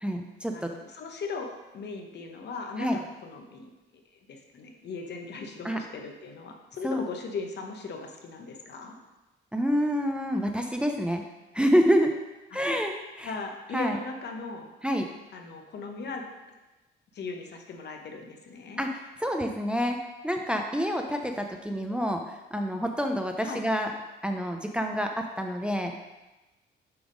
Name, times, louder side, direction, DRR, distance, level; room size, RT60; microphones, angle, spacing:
voice 1, 0.0-0.7 2.8-3.0 5.6-5.8 6.8-7.0 9.5-11.2 11.5-12.1 12.5-13.3 13.7-14.0 14.8-15.1 18.8-23.9 24.2-26.1, equal, 5° right, 3 dB, 0.6 m, -27 dB
voice 2, 0.5-3.7 4.1-9.0 12.5-12.6 13.2-14.7 15.3-16.2 17.1-18.9 23.4-23.6, left 4 dB, 60° left, 3 dB, 1.0 m, -38 dB
7.0 x 3.5 x 5.2 m, 1.1 s
cardioid pair, 90°, 20 cm